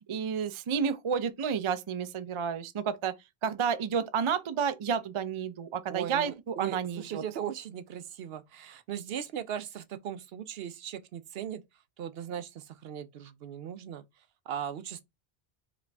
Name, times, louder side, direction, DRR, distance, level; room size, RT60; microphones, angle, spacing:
voice 1, 0.1-3.1 3.4-7.2, right 7 dB, 45° right, 0.4 m, -31 dB
voice 2, 5.9-11.6 12.0-14.0 14.5-15.0, right 9 dB, 70° right, 0.8 m, -38 dB
5.0 x 3.1 x 3.4 m
omnidirectional pair, 1.1 m